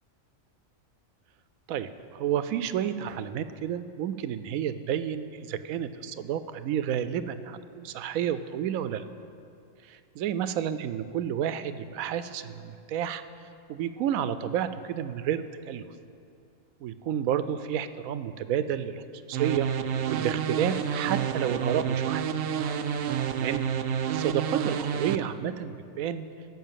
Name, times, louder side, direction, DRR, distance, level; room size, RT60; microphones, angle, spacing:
voice 1, 1.7-9.0 9.9-13.2 13.7-15.8 16.8-19.0 19.3-19.7 20.1-22.2 23.3-23.7 24.1-26.3, right 9 dB, 90° right, 12 dB, 1.0 m, -30 dB
sound 1, 19.3-25.2, right 8 dB, 65° right, 0.6 m, -29 dB
15.0 x 5.7 x 7.4 m, 2.5 s
omnidirectional pair, 1.4 m